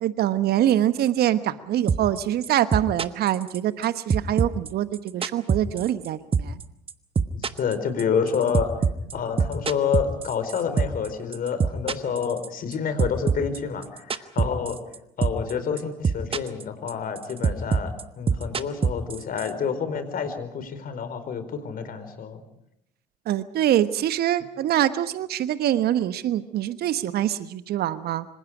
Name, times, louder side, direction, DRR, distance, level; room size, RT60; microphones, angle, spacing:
voice 1, 0.0-6.5 23.3-28.3, right 12 dB, 50° right, 13 dB, 1.2 m, -24 dB
sound 1, 1.9-2.2 2.4-3.8 4.1-6.1 6.3-6.6 6.9-11.1 11.3-12.7 13.0-15.0 15.2-15.5 15.8-16.6 16.9-19.5, right 6 dB, 25° right, 1.3 m, -24 dB
voice 2, 7.3-8.7 9.1-14.8 15.2-22.4, left 6 dB, 45° left, 10 dB, 4.5 m, -28 dB
26.5 x 26.0 x 5.0 m, 0.76 s
hypercardioid pair, 60°, 21 cm